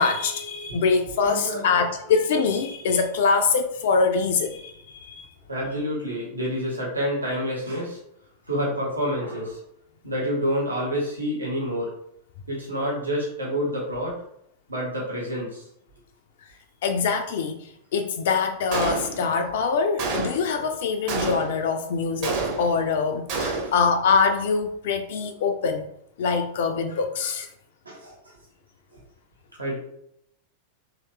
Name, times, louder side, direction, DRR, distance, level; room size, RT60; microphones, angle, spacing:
voice 1, 0.0-5.3 16.8-25.9 26.2-27.5, left 5 dB, 55° left, 6 dB, 0.3 m, -24 dB
voice 2, 1.2-1.9 5.5-8.0 8.5-9.6 10.0-12.0 12.5-14.2 14.7-15.6 19.1-19.3 23.5-23.7 27.8-28.3 29.6-29.8, equal, 80° right, -3 dB, 0.9 m, -28 dB
Gunshot gunfire, 18.7-19.4 20.0-20.6 21.1-21.7 22.2-22.9 23.3-23.9, right 3 dB, 45° right, 0.9 m, -28 dB
3.0 x 2.9 x 3.1 m, 0.74 s
figure-of-eight pair, 90°, 0 cm